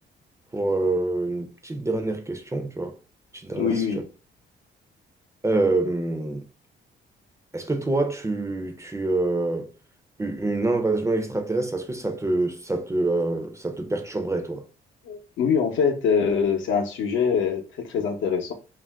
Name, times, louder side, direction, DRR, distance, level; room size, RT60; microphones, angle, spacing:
voice 1, 0.5-3.0 3.4-3.8 5.4-6.4 7.5-9.7 10.2-14.6, right 2 dB, 15° right, 0.4 m, -26 dB
voice 2, 3.5-4.0 15.0-18.5, left 6 dB, 75° left, 0.7 m, -24 dB
2.4 x 2.1 x 3.3 m
cardioid pair, 90°, 20 cm